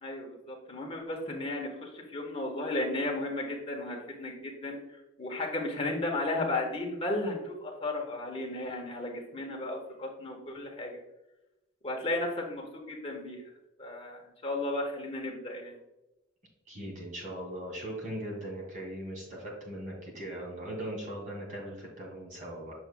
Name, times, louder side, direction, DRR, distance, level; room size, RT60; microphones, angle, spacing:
voice 1, 0.0-11.0 11.8-13.4 13.8-15.8, left 2 dB, 30° left, 0 dB, 1.2 m, -34 dB
voice 2, 16.7-22.7, right 1 dB, 45° right, -2 dB, 2.3 m, -39 dB
7.5 x 6.1 x 2.2 m, 0.95 s
head